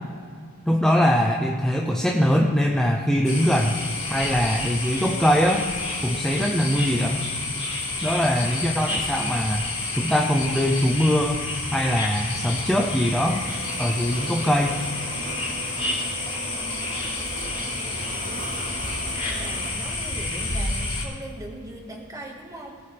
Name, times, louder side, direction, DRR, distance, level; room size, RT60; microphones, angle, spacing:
voice 1, 0.7-3.8 4.1-5.7 6.0-7.3 8.0-9.6 9.9-11.4 11.7-13.4 13.8-14.8, equal, 5° left, 0 dB, 0.7 m, -22 dB
sound 1, 3.2-21.0, left 2 dB, 25° left, 3.6 m, -30 dB
sound 2, 13.2-19.7, right 2 dB, 40° right, 1.7 m, -39 dB
voice 2, 16.5-18.2 19.3-22.7, right 1 dB, 15° right, 0 dB, 1.8 m, -40 dB
18.5 x 12.0 x 3.5 m, 2.1 s
head